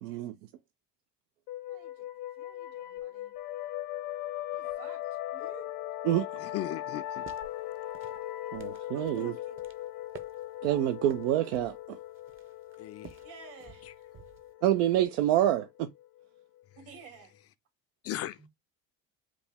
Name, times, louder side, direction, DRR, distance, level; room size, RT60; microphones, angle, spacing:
voice 1, 0.0-0.4 6.0-6.3 8.5-9.3 10.6-12.0 14.6-15.9, right 12 dB, 85° right, 0.5 m, -27 dB
sound 1, 1.5-16.8, left 13 dB, 75° left, 0.9 m, -40 dB
voice 2, 1.7-2.1 2.3-3.3 4.5-5.7 8.9-9.6 10.6-10.9 11.9-12.0 13.2-14.0 16.8-17.3 18.4-18.5, right 6 dB, 70° right, 2.6 m, -52 dB
voice 3, 6.4-7.3 12.8-13.2 18.0-18.5, left 13 dB, 45° left, 0.4 m, -37 dB
sound 2, 7.0-14.5, right 7 dB, 35° right, 0.7 m, -53 dB
5.0 x 2.3 x 3.4 m
supercardioid pair, 100°, 36 cm